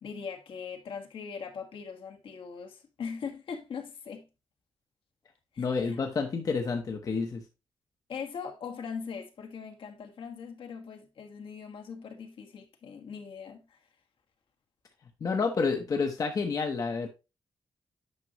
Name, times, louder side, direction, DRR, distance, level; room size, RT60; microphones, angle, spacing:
voice 1, 0.0-4.3 5.5-6.0 8.1-13.8, left 6 dB, 70° left, 1.5 m, -41 dB
voice 2, 5.6-7.4 15.2-17.1, left 4 dB, 40° left, 0.9 m, -29 dB
9.5 x 5.9 x 3.0 m
wide cardioid pair, 175°, 9 cm